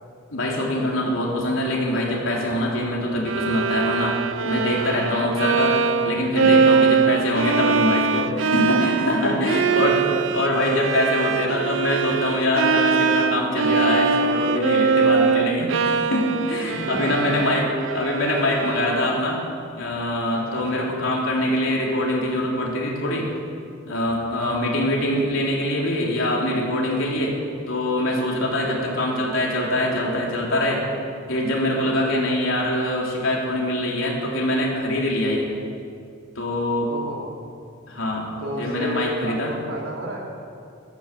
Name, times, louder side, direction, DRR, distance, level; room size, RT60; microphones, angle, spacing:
voice 1, 0.3-4.2 4.4-5.8 6.0-10.0 10.3-17.7 17.9-19.4 19.8-23.3 23.9-27.3 27.7-30.8 31.3-35.5 36.4-36.9 37.9-38.3 38.6-39.5, left 1 dB, 75° left, -3 dB, 3.5 m, -23 dB
Bowed string instrument, 3.3-19.3, right 5 dB, 70° right, 0.6 m, -22 dB
voice 2, 4.6-5.3 6.4-6.5 8.3-10.5 16.7-16.9 17.3-17.4 17.6-17.8 20.3-20.9 24.3-24.7 28.6-28.7 31.9-32.1 36.8-37.3 38.4-40.3, right 1 dB, 85° right, -1 dB, 3.4 m, -33 dB
15.0 x 13.0 x 7.5 m, 2.4 s
head